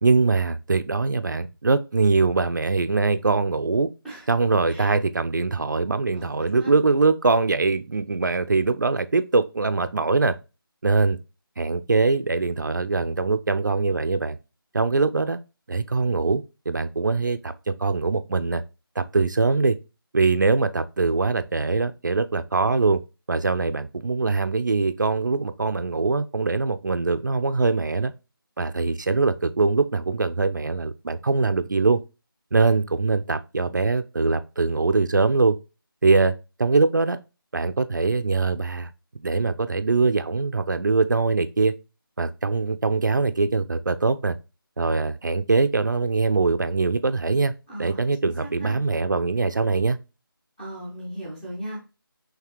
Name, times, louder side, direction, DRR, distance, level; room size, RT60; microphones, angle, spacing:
voice 1, 0.0-3.9 4.3-10.3 10.8-11.2 11.6-14.4 14.7-15.4 15.7-17.5 17.8-18.6 19.0-19.8 20.1-23.0 23.3-28.1 28.6-32.0 32.5-35.6 36.0-36.3 36.6-37.2 37.5-38.9 39.2-41.7 42.2-44.4 44.8-47.5 47.8-50.0, right 3 dB, 55° right, 0.4 m, -22 dB
voice 2, 6.1-6.8 47.7-48.8 50.6-51.8, right 1 dB, ahead, 0.4 m, -37 dB
5.8 x 2.8 x 2.9 m
figure-of-eight pair, 160°, 12 cm